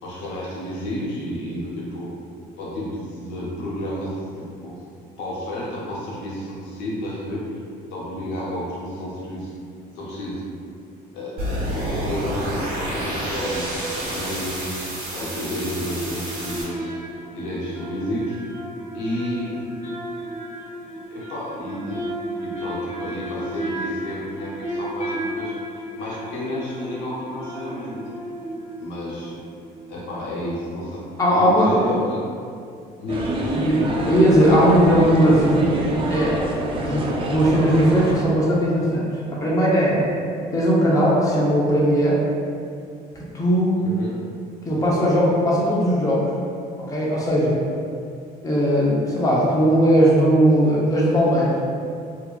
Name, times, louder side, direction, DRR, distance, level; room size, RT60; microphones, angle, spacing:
voice 1, 0.0-2.1 2.6-4.8 5.2-7.5 7.9-9.5 9.9-10.4 11.1-11.5 11.9-14.7 15.1-17.1 17.3-18.4 18.9-19.6 21.1-22.1 22.4-28.0 28.8-29.4 29.9-31.0 31.3-32.2 33.0-33.6 36.9-37.1 43.8-44.1, left 1 dB, 90° left, -5 dB, 0.6 m, -31 dB
sound 1, 11.4-16.6, equal, 60° right, 0.9 m, -29 dB
sound 2, 13.3-14.5 15.6-30.2 30.4-30.5, right 1 dB, 40° left, 1.0 m, -34 dB
voice 2, 31.2-31.8 33.5-35.7 36.1-36.4 36.7-37.0 37.3-40.0 40.5-42.2 43.3-43.8 44.7-46.2 46.9-47.6 48.4-51.6, equal, 20° left, -6 dB, 0.6 m, -18 dB
sound 3, 33.1-38.2, right 1 dB, 30° right, 0.3 m, -27 dB
2.7 x 2.3 x 2.2 m, 2.4 s
cardioid pair, 110°, 17 cm